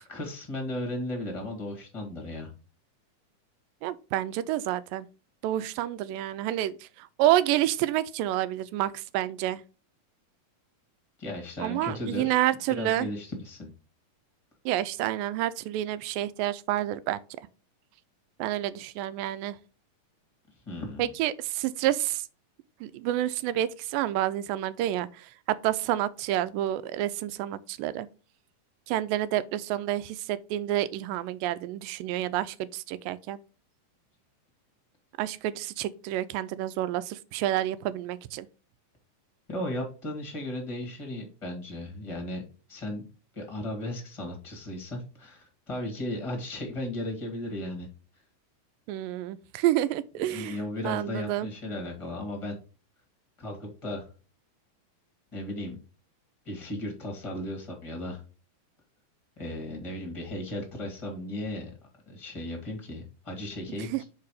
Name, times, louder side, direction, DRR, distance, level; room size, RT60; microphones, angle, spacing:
voice 1, 0.1-2.5 11.2-12.4 12.7-13.7 20.6-21.1 39.5-42.4 42.7-43.1 43.3-47.9 50.3-52.6 53.4-54.1 55.3-55.8 56.4-58.2 59.4-61.7 62.1-64.0, left 1 dB, 15° left, 1.1 m, -35 dB
voice 2, 3.8-5.1 5.4-9.6 11.6-13.1 14.7-17.2 18.4-19.6 21.0-22.3 22.8-28.1 28.9-33.4 35.2-38.5 48.9-50.6 50.8-51.5 63.9-64.0, right 13 dB, 85° right, 2.2 m, -29 dB
5.1 x 4.7 x 4.9 m
omnidirectional pair, 4.0 m